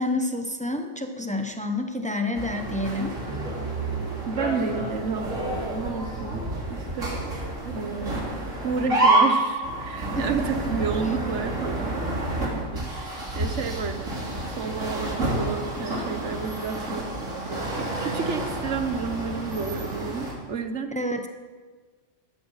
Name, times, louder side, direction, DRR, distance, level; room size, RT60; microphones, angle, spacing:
voice 1, 0.0-3.1 10.1-10.3 20.9-21.3, left 1 dB, 5° left, 5 dB, 1.0 m, -28 dB
sound 1, 2.3-20.3, right 2 dB, 80° right, 3.4 m, -29 dB
voice 2, 4.3-7.3 7.7-8.4 8.6-12.0 12.4-14.2 14.5-17.1 17.4-20.9, right 5 dB, 65° right, 9 dB, 1.4 m, -31 dB
16.5 x 12.0 x 5.8 m, 1.4 s
omnidirectional pair, 1.3 m